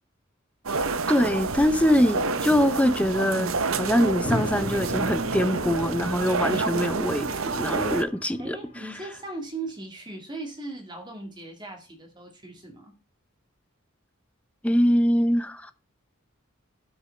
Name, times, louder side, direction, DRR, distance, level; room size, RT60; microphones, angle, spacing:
sound 1, 0.7-8.0, right 4 dB, 75° right, 0.8 m, -28 dB
voice 1, 1.1-8.6 14.6-15.7, equal, 5° left, 0.6 m, -23 dB
sound 2, 4.2-8.9, left 1 dB, 30° left, 1.8 m, -36 dB
voice 2, 8.4-12.9, right 2 dB, 20° right, 2.0 m, -38 dB
12.5 x 6.1 x 3.3 m
head